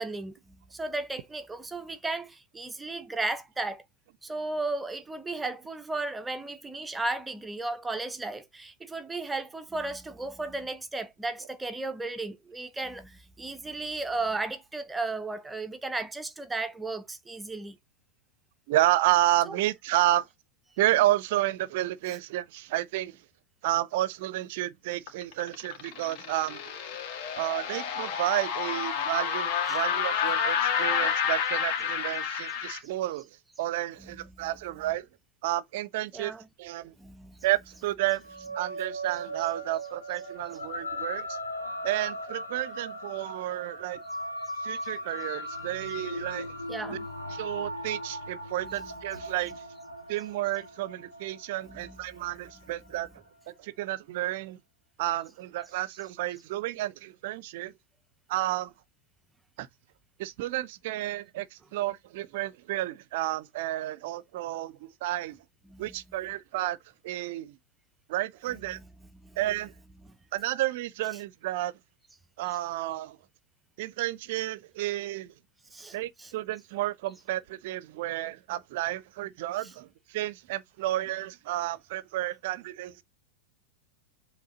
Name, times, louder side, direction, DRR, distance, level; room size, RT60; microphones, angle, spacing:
voice 1, 0.0-3.8 4.2-17.8 19.5-19.6 29.7-29.8 34.0-34.5 36.1-36.5 37.0-37.4 46.7-47.1 48.6-48.9 51.6-52.0 65.7-66.0 68.5-68.8 69.2-69.4 75.7-76.3 79.6-79.7, right 2 dB, 10° right, 0.7 m, -35 dB
voice 2, 18.7-20.3 20.8-23.1 23.6-26.7 27.4-33.3 33.6-35.0 35.4-36.3 36.6-36.9 37.4-38.2 38.5-41.3 41.8-44.0 44.6-46.5 47.3-49.5 50.1-53.1 53.6-54.6 55.0-57.7 58.3-58.7 59.6-59.7 60.2-61.5 61.7-65.4 65.8-66.8 67.0-67.6 68.1-68.8 69.4-69.7 70.3-71.7 72.4-73.2 73.8-75.3 75.9-79.9 80.1-83.0, right 15 dB, 50° right, 0.6 m, -31 dB
sound 1, 25.1-32.8, left 7 dB, 45° left, 1.9 m, -29 dB
sound 2, 38.2-52.9, equal, 80° left, 1.9 m, -38 dB
7.6 x 3.2 x 3.9 m
figure-of-eight pair, 90°, 0 cm